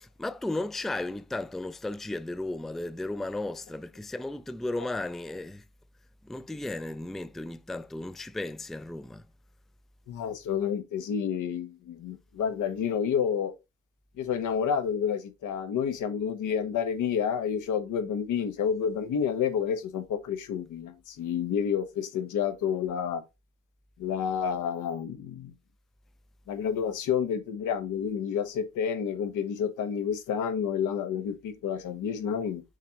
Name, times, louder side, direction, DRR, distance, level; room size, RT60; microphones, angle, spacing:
voice 1, 0.0-5.6 6.2-9.2, left 2 dB, ahead, 0.4 m, -35 dB
voice 2, 10.1-13.5 14.2-23.2 24.0-25.5 26.5-32.6, left 7 dB, 85° left, 1.4 m, -29 dB
6.5 x 3.3 x 5.1 m
cardioid pair, 90°, 30 cm